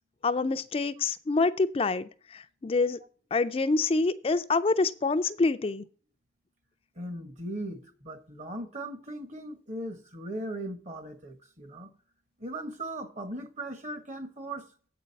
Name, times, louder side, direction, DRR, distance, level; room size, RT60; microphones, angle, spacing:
voice 1, 0.2-3.0 3.3-5.8, left 3 dB, 35° left, 0.4 m, -26 dB
voice 2, 7.0-11.9 12.4-14.7, right 1 dB, 45° right, 1.3 m, -38 dB
8.0 x 5.2 x 7.5 m
head